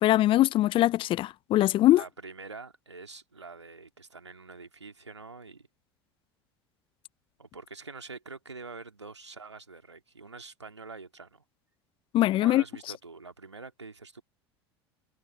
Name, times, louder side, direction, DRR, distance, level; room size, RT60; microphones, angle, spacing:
voice 1, 0.0-2.0 12.1-12.6, left 15 dB, 40° left, 0.5 m, -22 dB
voice 2, 1.9-5.7 7.4-11.4 12.4-14.2, right 4 dB, 85° right, 2.2 m, -45 dB
figure-of-eight pair, 75°, 14 cm